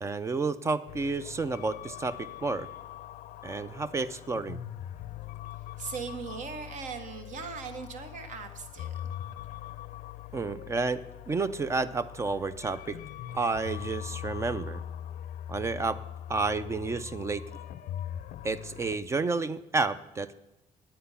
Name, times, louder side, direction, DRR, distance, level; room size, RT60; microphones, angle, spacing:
voice 1, 0.0-2.7 3.4-4.6 10.3-11.0 11.3-13.0 13.3-14.8 15.5-16.0 16.3-17.4 18.4-20.3, right 3 dB, 20° right, 14 dB, 0.4 m, -30 dB
sound 1, 0.9-19.0, left 11 dB, 70° left, 0.5 m, -42 dB
voice 2, 5.8-9.0, right 5 dB, 60° right, 7 dB, 1.4 m, -39 dB
10.5 x 8.6 x 5.6 m, 1.0 s
cardioid pair, 170°, 14 cm